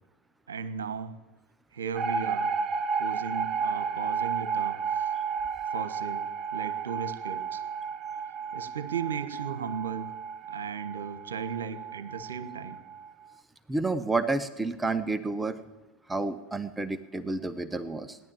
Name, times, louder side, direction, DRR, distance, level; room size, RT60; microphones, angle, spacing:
voice 1, 0.5-1.2 1.7-2.5 3.0-5.1 5.7-6.3 6.5-7.6 8.5-10.1 10.5-12.8, right 6 dB, 80° right, 10 dB, 1.3 m, -36 dB
sound 1, 1.9-13.1, right 6 dB, 40° right, 0.8 m, -32 dB
voice 2, 13.7-15.6 16.1-18.2, right 3 dB, 10° right, 11 dB, 0.9 m, -30 dB
17.0 x 11.0 x 7.5 m, 1.1 s
hypercardioid pair, 90°, 0 cm